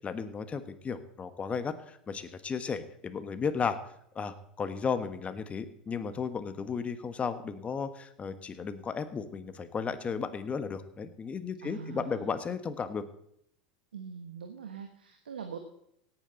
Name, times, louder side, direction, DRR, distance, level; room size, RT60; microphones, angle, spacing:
voice 1, 0.0-3.8 4.1-13.0, left 6 dB, 25° left, 11 dB, 1.4 m, -34 dB
voice 2, 11.6-12.4 13.9-15.6, right 6 dB, 85° right, 5 dB, 1.3 m, -42 dB
17.5 x 9.2 x 4.0 m, 0.73 s
hypercardioid pair, 85°, 5 cm